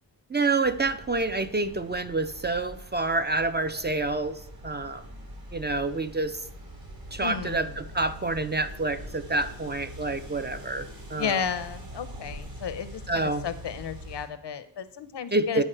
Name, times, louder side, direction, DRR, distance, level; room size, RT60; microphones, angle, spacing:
voice 1, 0.3-4.4 4.6-5.0 5.5-6.4 7.1-11.4 13.1-13.4 15.3-15.6, right 2 dB, 25° right, 10 dB, 0.4 m, -28 dB
sound 1, 0.6-14.3, equal, 55° right, 2.0 m, -43 dB
voice 2, 7.2-7.8 11.2-15.6, left 7 dB, 75° left, 12 dB, 0.6 m, -33 dB
9.9 x 4.6 x 4.4 m, 0.69 s
wide cardioid pair, 95°, 41 cm